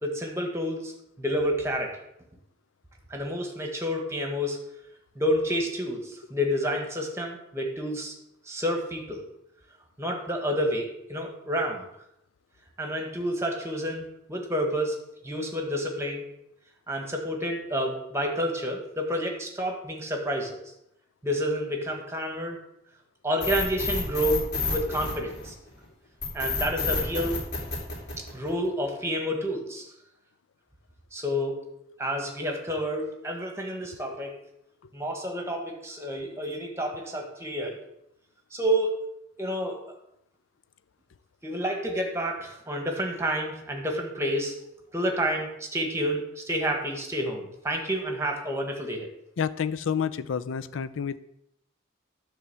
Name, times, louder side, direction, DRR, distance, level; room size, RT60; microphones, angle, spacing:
voice 1, 0.0-0.9 1.2-2.0 3.1-4.6 5.1-8.1 8.5-9.2 10.0-11.8 12.8-15.0 15.2-16.3 16.9-20.6 21.2-22.6 23.2-25.5 26.3-27.4 28.2-29.9 31.1-31.7 32.0-34.4 34.9-37.8 38.5-39.1 39.4-39.8 41.4-44.6 44.9-49.1, equal, 15° right, 1.3 m, -29 dB
sound 1, 23.4-25.7 26.2-28.7, left 4 dB, 55° left, 2.9 m, -29 dB
voice 2, 49.4-51.2, left 7 dB, 75° left, 0.4 m, -29 dB
10.5 x 3.5 x 6.8 m
head